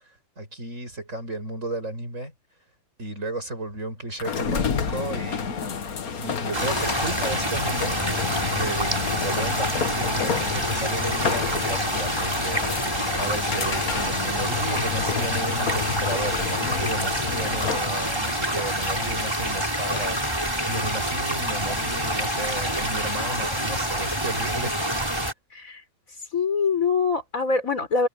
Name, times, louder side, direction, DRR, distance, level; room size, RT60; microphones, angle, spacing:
voice 1, 0.0-2.3 3.0-5.5 6.2-8.0 8.5-24.8, right 2 dB, 60° right, 8.3 m, -33 dB
sound 1, 4.2-17.9, left 7 dB, 90° left, 2.0 m, -30 dB
sound 2, 6.5-25.3, right 1 dB, 15° right, 5.6 m, -27 dB
voice 2, 25.5-25.8 26.3-28.1, left 5 dB, 75° left, 4.6 m, -24 dB
omnidirectional pair, 1.5 m